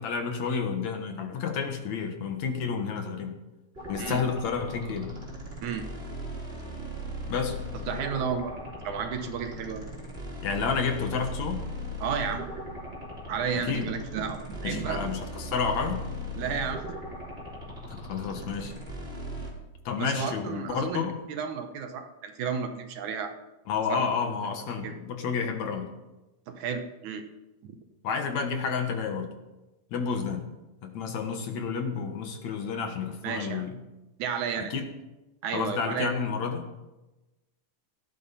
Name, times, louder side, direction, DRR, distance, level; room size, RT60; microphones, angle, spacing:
voice 1, 0.0-3.4 3.9-5.1 7.3-7.6 10.4-11.6 13.7-13.9 14.6-16.0 17.9-18.7 19.9-21.1 23.7-25.9 28.0-29.3 29.9-30.4 30.8-33.7 34.7-34.9 35.5-36.7, left 6 dB, 65° left, 5 dB, 2.5 m, -30 dB
sound 1, 3.7-19.5, equal, 20° right, 3.7 m, -38 dB
voice 2, 7.7-8.5 8.8-9.9 12.0-12.5 13.3-15.1 16.4-16.9 20.0-23.3 23.9-24.0 24.8-24.9 26.5-27.2 27.6-27.8 33.2-33.7 34.2-34.7 35.4-36.1, right 6 dB, 70° right, 6 dB, 2.4 m, -32 dB
16.5 x 12.0 x 4.2 m, 1.0 s
omnidirectional pair, 3.7 m